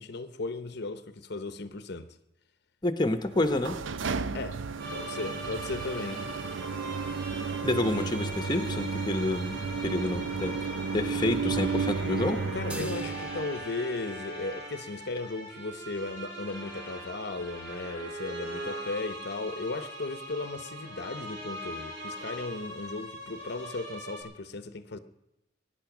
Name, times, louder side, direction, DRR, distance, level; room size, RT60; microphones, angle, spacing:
voice 1, 0.0-2.2 4.3-6.2 12.5-25.0, left 3 dB, 60° left, 0.8 m, -36 dB
voice 2, 2.8-3.8 7.6-12.4, left 1 dB, 25° left, 0.9 m, -29 dB
sound 1, 3.3-13.6, right 5 dB, 85° right, 0.7 m, -33 dB
sound 2, 4.8-24.2, equal, 65° right, 6.1 m, -41 dB
sound 3, 12.7-15.3, equal, 5° right, 1.0 m, -45 dB
21.0 x 9.8 x 6.1 m
head